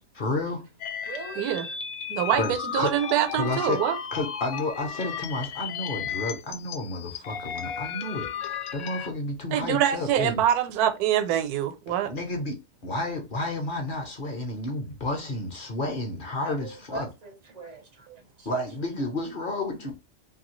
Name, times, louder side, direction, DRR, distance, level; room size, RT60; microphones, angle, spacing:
voice 1, 0.1-0.6 2.4-2.9 3.3-3.8 4.1-10.4 12.0-17.1 18.5-19.9, left 2 dB, 50° left, 0.6 m, -31 dB
sound 1, 0.8-9.1, left 7 dB, 80° left, 1.0 m, -34 dB
voice 2, 1.0-1.5 8.3-8.4 16.4-18.1 18.4-18.5, right 3 dB, 50° right, 0.5 m, -41 dB
voice 3, 2.1-4.0 9.5-12.1, right 10 dB, 85° right, 1.1 m, -25 dB
2.7 x 2.7 x 2.9 m
omnidirectional pair, 1.6 m